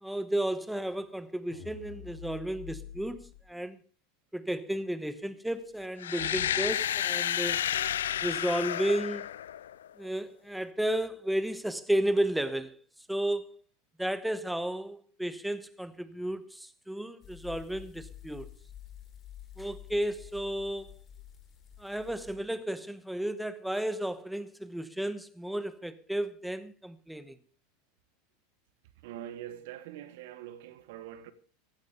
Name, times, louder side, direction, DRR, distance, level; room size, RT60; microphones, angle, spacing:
voice 1, 0.0-3.8 4.3-7.6 8.2-9.3 10.0-12.7 13.1-13.6 14.0-18.5 19.6-20.9 21.8-27.3, right 1 dB, 5° right, 1.1 m, -33 dB
sound 1, 1.5-3.3, left 9 dB, 70° left, 2.8 m, -46 dB
sound 2, 6.0-9.9, left 10 dB, 85° left, 0.6 m, -31 dB
sound 3, 17.2-22.4, left 11 dB, 30° left, 3.4 m, -49 dB
voice 2, 29.0-31.3, right 11 dB, 70° right, 1.5 m, -43 dB
15.5 x 12.0 x 5.3 m
hypercardioid pair, 100°, 0 cm